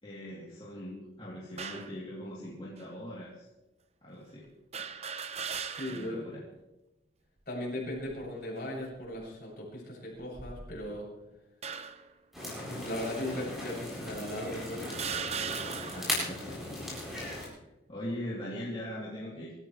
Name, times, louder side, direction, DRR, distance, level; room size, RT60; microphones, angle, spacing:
voice 1, 0.0-3.5 4.0-4.5 5.9-6.4 15.9-16.8 17.2-19.5, equal, 30° left, -7 dB, 3.4 m, -41 dB
sound 1, 1.6-2.0 2.8-2.9 4.7-6.2 6.6-6.7 7.9-8.3 9.0-9.2 10.2-11.0 11.6-12.1 13.0-13.1 14.0-14.1 14.9-16.2, right 6 dB, 35° right, 0.8 m, -38 dB
voice 2, 5.7-6.2 7.5-11.1 12.6-15.0, left 1 dB, 55° left, -4 dB, 7.9 m, -37 dB
sound 2, 12.3-17.5, left 1 dB, ahead, 7.9 m, -38 dB
26.5 x 14.5 x 3.4 m, 0.99 s
head